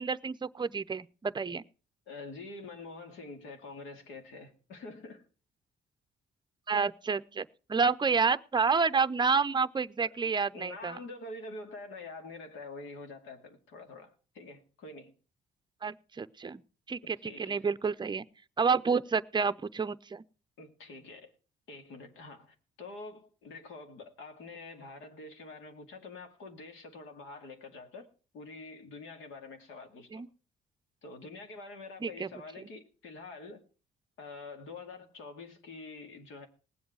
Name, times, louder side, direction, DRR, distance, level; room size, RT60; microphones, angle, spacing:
voice 1, 0.0-1.6 6.7-11.0 15.8-16.6 16.9-18.2 18.6-20.2 30.1-30.3 32.0-32.3, right 5 dB, 20° right, 0.6 m, -29 dB
voice 2, 2.1-5.2 10.0-10.1 10.5-15.1 17.2-17.6 20.6-21.3 21.7-28.1 28.3-30.2 31.0-33.6 34.2-36.5, left 3 dB, 85° left, 2.3 m, -46 dB
19.0 x 7.9 x 4.7 m
cardioid pair, 90°, 20 cm